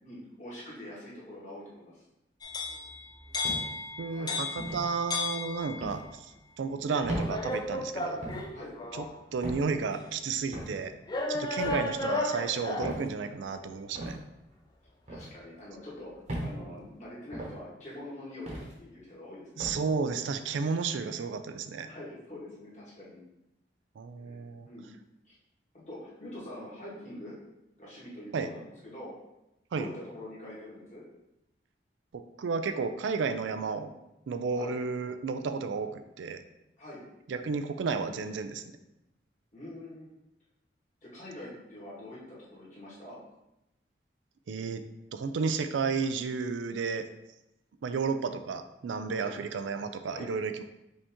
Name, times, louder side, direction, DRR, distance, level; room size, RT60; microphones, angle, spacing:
voice 1, 0.0-2.0 4.0-4.4 8.5-8.7 11.5-11.7 15.1-19.7 21.9-23.2 24.2-24.8 25.2-25.3 25.7-27.4 27.8-29.1 29.8-31.0 34.5-34.7 36.8-37.0 39.5-40.1 41.0-43.2 49.2-49.4 50.1-50.3, left 1 dB, 40° left, -7 dB, 1.6 m, -45 dB
sound 1, 2.4-6.0 6.9-9.2 9.9-10.0 11.1-13.0, left 2 dB, 20° left, 0.4 m, -34 dB
sound 2, 3.4-3.9 4.6-4.8 5.8-6.0 7.0-7.3 8.2-8.5 9.4-9.7 10.5-10.8 11.6-11.8 12.8-13.1 13.9-14.2 15.1-15.3 16.3-16.5 17.3-17.6 18.5-18.7 19.6-19.8, right 1 dB, 35° right, 1.0 m, -36 dB
voice 2, 4.0-8.2 8.9-9.1 9.3-10.9 11.3-14.2 19.6-21.9 24.0-24.7 28.3-28.5 29.7-29.9 32.1-33.9 34.3-36.4 37.3-38.6 44.5-44.8 45.1-47.1 47.8-50.6, right 5 dB, 90° right, 9 dB, 0.4 m, -32 dB
5.3 x 2.8 x 3.5 m, 0.90 s
head